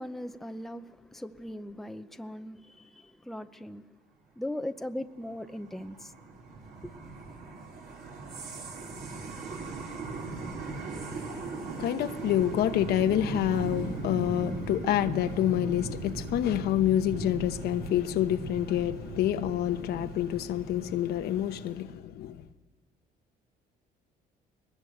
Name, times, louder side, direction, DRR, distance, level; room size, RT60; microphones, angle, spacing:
voice 1, 0.0-3.8 4.4-6.1, left 1 dB, ahead, 0.7 m, -39 dB
sound 1, 5.2-21.7, right 3 dB, 65° right, 4.9 m, -39 dB
voice 2, 11.6-22.4, left 11 dB, 70° left, 1.0 m, -28 dB
21.5 x 20.0 x 7.9 m
cardioid pair, 110°, 17 cm